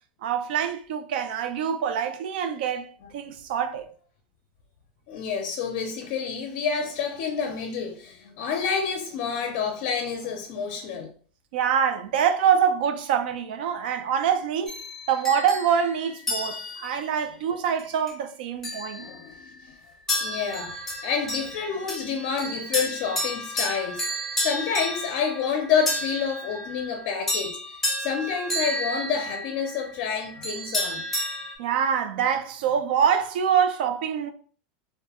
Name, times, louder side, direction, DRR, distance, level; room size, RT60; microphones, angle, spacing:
voice 1, 0.2-2.9 3.1-3.8 11.5-14.8 15.1-19.1 31.6-34.3, right 8 dB, 75° right, 0.4 m, -25 dB
voice 2, 5.1-11.1 19.0-19.7 20.2-27.6 28.0-31.1, left 6 dB, 55° left, 0.4 m, -29 dB
sound 1, 14.7-17.0 17.8-18.1 18.6-19.5 20.1-31.5, left 1 dB, 5° left, 0.6 m, -31 dB
2.3 x 2.2 x 2.8 m
supercardioid pair, 150°, 5 cm